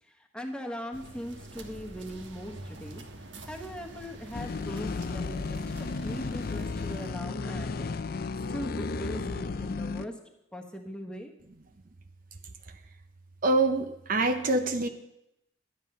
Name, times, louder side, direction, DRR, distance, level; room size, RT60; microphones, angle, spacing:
voice 1, 0.3-3.0 3.4-7.9 8.5-10.2 10.5-11.3, equal, 5° left, 2 dB, 1.2 m, -40 dB
sound 1, 0.9-7.1, right 2 dB, 75° right, 1.3 m, -46 dB
sound 2, 4.3-10.1, left 4 dB, 55° left, 0.5 m, -33 dB
voice 2, 13.4-14.9, right 2 dB, 50° right, 7 dB, 0.7 m, -25 dB
12.0 x 10.0 x 5.5 m, 0.84 s
head